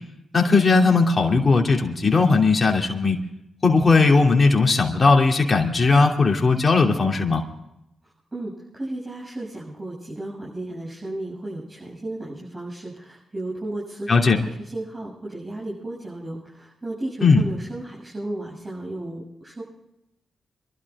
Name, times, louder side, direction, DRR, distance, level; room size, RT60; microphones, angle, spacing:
voice 1, 0.3-3.2 3.6-7.4 14.1-14.4 17.2-17.4, left 4 dB, 40° left, 1 dB, 2.9 m, -18 dB
voice 2, 8.3-19.6, right 1 dB, 30° right, -5 dB, 7.2 m, -34 dB
26.0 x 12.5 x 3.7 m, 0.84 s
supercardioid pair, 45°, 0 cm